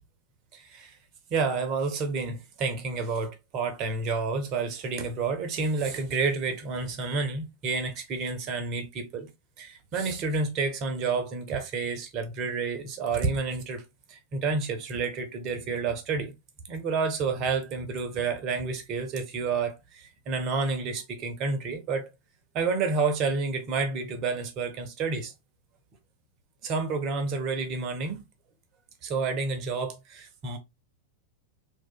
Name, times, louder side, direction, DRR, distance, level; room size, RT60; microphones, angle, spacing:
voice 1, 0.5-0.9 1.3-9.3 9.6-13.8 14.1-16.3 16.7-22.1 22.5-25.3 26.6-28.2 29.0-30.6, right 4 dB, 35° right, 0.6 m, -29 dB
2.7 x 2.3 x 2.2 m
figure-of-eight pair, 90°, 0 cm